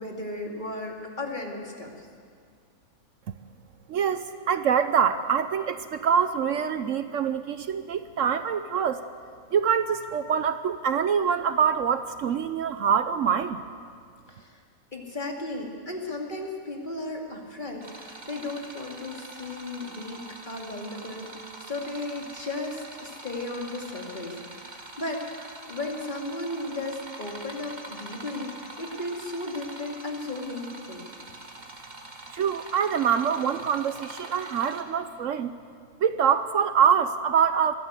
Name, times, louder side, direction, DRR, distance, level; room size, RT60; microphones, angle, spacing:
voice 1, 0.0-2.1 14.3-14.6 14.9-21.3 21.6-31.1, left 2 dB, 35° left, 0 dB, 2.6 m, -35 dB
voice 2, 3.9-9.0 9.5-13.6 32.3-35.5 36.0-37.7, right 7 dB, 65° right, 11 dB, 1.0 m, -25 dB
sound 1, 17.8-34.8, right 2 dB, 30° right, 1.7 m, -44 dB
21.5 x 15.0 x 8.1 m, 2.1 s
omnidirectional pair, 1.5 m